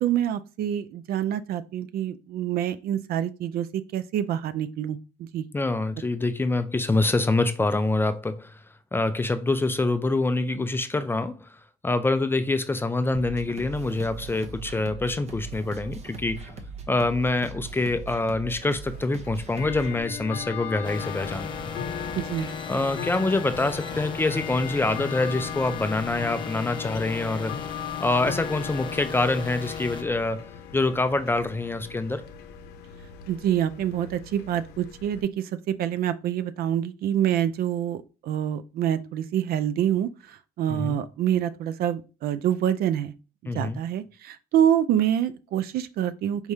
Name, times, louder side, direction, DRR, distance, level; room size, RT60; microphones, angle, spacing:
voice 1, 0.0-5.4 22.2-22.5 33.3-43.1 43.4-46.5, right 10 dB, 65° right, 0.4 m, -26 dB
voice 2, 5.5-8.6 8.9-16.5 16.9-21.8 22.7-27.6 28.0-30.5 30.7-32.2 40.7-41.0 43.5-43.8, left 2 dB, 15° left, 0.4 m, -26 dB
sound 1, 13.1-20.0, right 4 dB, 40° right, 0.8 m, -40 dB
Bell / Tick-tock, 18.9-35.2, left 8 dB, 85° left, 0.6 m, -38 dB
sound 2, 20.8-30.0, left 5 dB, 30° left, 0.8 m, -37 dB
4.7 x 3.3 x 2.7 m
cardioid pair, 110°, 17 cm